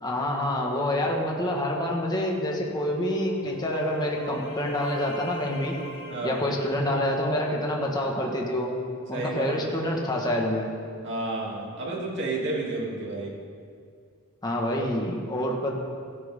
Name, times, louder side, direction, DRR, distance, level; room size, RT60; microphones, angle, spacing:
voice 1, 0.0-5.7 6.2-8.7 9.1-10.7 14.4-15.7, left 1 dB, 20° left, -1 dB, 1.6 m, -27 dB
sound 1, 2.5-8.2, left 1 dB, 60° left, 1.4 m, -42 dB
voice 2, 6.1-6.4 9.1-9.6 11.0-13.4, right 2 dB, 55° right, -3 dB, 2.8 m, -31 dB
16.5 x 13.5 x 3.7 m, 2.3 s
head